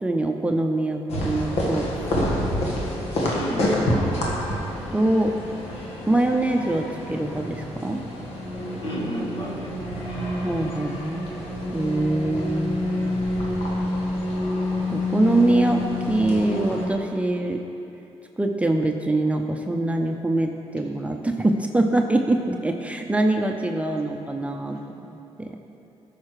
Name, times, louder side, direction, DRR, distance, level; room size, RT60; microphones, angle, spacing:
voice 1, 0.0-2.4 4.9-5.3 6.1-8.0 9.9-11.2 11.7-12.9 14.9-17.6 18.4-25.6, right 2 dB, 10° right, 3 dB, 0.7 m, -24 dB
sound 1, 1.1-16.9, left 1 dB, 85° left, 1.6 m, -28 dB
voice 2, 3.3-4.4 8.8-10.0 24.3-24.5, left 1 dB, 60° left, -2 dB, 1.9 m, -32 dB
13.0 x 5.8 x 4.8 m, 2.9 s
cardioid pair, 75°, 10 cm